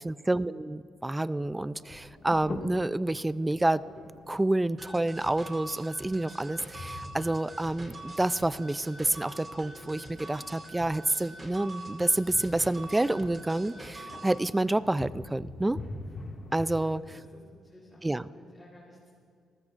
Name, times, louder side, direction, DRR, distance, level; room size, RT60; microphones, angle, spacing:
voice 1, 0.0-3.8 4.3-15.8 16.5-17.0 18.0-18.2, right 2 dB, 15° right, 16 dB, 0.4 m, -28 dB
sound 1, 1.4-16.9, left 2 dB, 40° left, 1.9 m, -46 dB
sound 2, 4.8-14.4, right 2 dB, 35° right, 2.3 m, -45 dB
voice 2, 16.6-19.1, left 1 dB, 10° left, -6 dB, 3.7 m, -55 dB
29.0 x 14.5 x 2.5 m, 2.2 s
cardioid pair, 90°, 0 cm